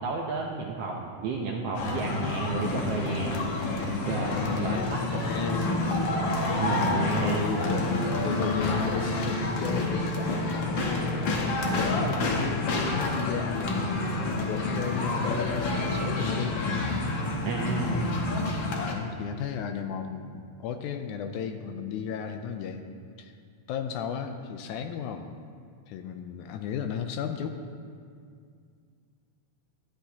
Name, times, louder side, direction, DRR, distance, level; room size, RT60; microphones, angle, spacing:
voice 1, 0.0-3.3 4.1-4.8 5.2-5.3 6.6-7.4 17.4-18.0, right 4 dB, 75° right, 0 dB, 1.4 m, -31 dB
sound 1, 1.7-18.9, left 2 dB, 60° left, 1.2 m, -28 dB
voice 2, 4.2-5.8 7.2-7.9 8.2-16.9 17.8-18.1 18.5-22.9 23.2-23.3 23.7-25.3 25.9-27.6, left 7 dB, 85° left, 7 dB, 2.0 m, -34 dB
14.0 x 11.5 x 2.9 m, 2.2 s
omnidirectional pair, 3.6 m